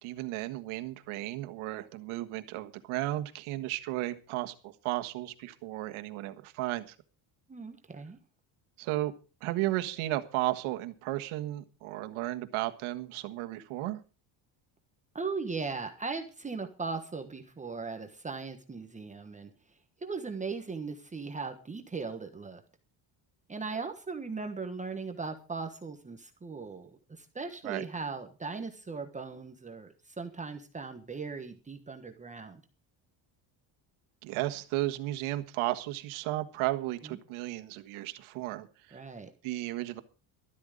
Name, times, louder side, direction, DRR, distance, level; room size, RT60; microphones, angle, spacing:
voice 1, 0.0-6.9 8.8-9.1 9.4-14.0 27.6-27.8 34.2-39.0 39.4-40.0, right 16 dB, 90° right, 9 dB, 1.7 m, -34 dB
voice 2, 7.5-8.2 15.1-19.5 20.0-22.6 23.5-32.6 37.0-37.2 38.9-39.3, right 4 dB, 15° right, 5 dB, 1.2 m, -38 dB
13.0 x 12.5 x 5.1 m, 0.34 s
cardioid pair, 160°, 48 cm